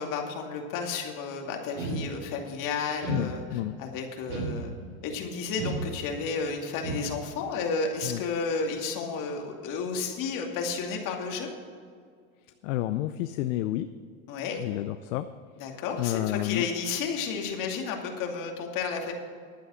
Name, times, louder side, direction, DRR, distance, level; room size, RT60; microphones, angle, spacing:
voice 1, 0.0-3.4 3.8-4.7 5.0-11.5 14.3-14.6 15.6-19.1, left 5 dB, 50° left, 2 dB, 2.5 m, -32 dB
sound 1, 1.8-2.5 3.0-3.8 4.3-5.1 5.6-6.4 6.8-7.4, right 3 dB, 85° right, 3.0 m, -35 dB
voice 2, 3.1-3.8 8.0-8.2 12.6-13.9 14.6-15.3 15.7-16.7, left 14 dB, 65° left, 11 dB, 0.7 m, -30 dB
11.5 x 9.2 x 6.4 m, 2.1 s
supercardioid pair, 125°, 41 cm